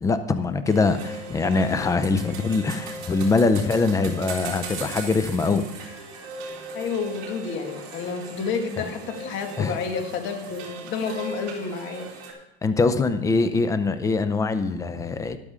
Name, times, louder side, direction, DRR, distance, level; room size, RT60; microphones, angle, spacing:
voice 1, 0.0-5.6 8.8-8.9 9.6-9.8 12.6-15.4, left 3 dB, 10° left, 11 dB, 0.4 m, -23 dB
sound 1, 0.6-12.3, right 3 dB, 55° right, 3.3 m, -38 dB
voice 2, 6.7-12.1, left 5 dB, 35° left, 4 dB, 1.9 m, -30 dB
13.5 x 11.0 x 3.7 m, 0.88 s
supercardioid pair, 145°, 32 cm